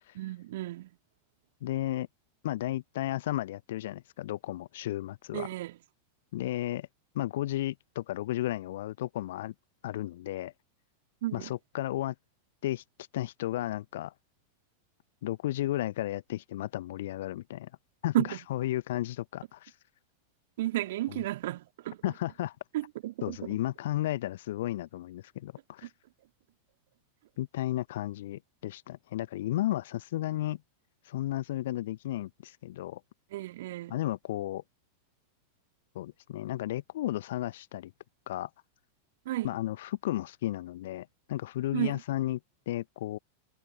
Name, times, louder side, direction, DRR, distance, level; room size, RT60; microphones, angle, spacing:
voice 1, 0.1-0.9 5.3-5.8 11.2-11.5 18.1-18.4 20.6-22.0 22.7-23.4 25.8-25.9 33.3-34.0 39.2-39.5 41.7-42.0, right 15 dB, 55° right, 2.9 m, -32 dB
voice 2, 1.6-2.1 2.4-5.5 6.3-6.9 7.1-9.5 9.8-10.5 11.3-12.1 12.6-12.8 13.1-14.1 15.2-17.7 18.0-18.1 18.5-19.7 21.1-21.2 22.0-22.5 23.2-25.9 27.4-30.6 31.1-33.0 33.9-34.6 35.9-37.9 38.3-38.5 39.4-42.4 42.7-43.2, left 14 dB, 55° left, 1.1 m, -33 dB
figure-of-eight pair, 90°, 0 cm